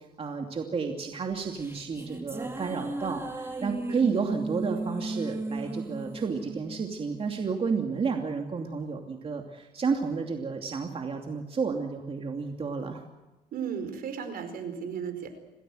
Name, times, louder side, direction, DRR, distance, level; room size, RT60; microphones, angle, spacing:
voice 1, 0.2-13.0, right 5 dB, 35° right, 3 dB, 2.8 m, -31 dB
sound 1, 1.3-7.9, right 2 dB, 15° right, 3.6 m, -36 dB
voice 2, 13.5-15.3, right 7 dB, 60° right, 9 dB, 4.8 m, -35 dB
27.5 x 18.0 x 7.9 m, 1.1 s
cardioid pair, 110°, 17 cm